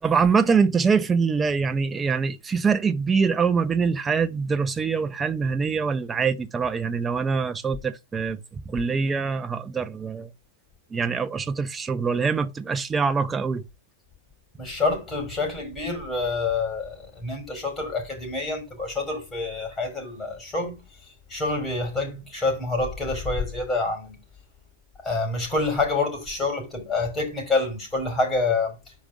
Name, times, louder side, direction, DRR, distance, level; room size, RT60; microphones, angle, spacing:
voice 1, 0.0-10.3 10.9-13.6, right 5 dB, 20° right, 0.8 m, -24 dB
voice 2, 14.6-20.8 21.3-24.2 25.0-28.8, left 3 dB, 20° left, 5.0 m, -27 dB
5.3 x 5.1 x 6.2 m
hypercardioid pair, 110°, 0 cm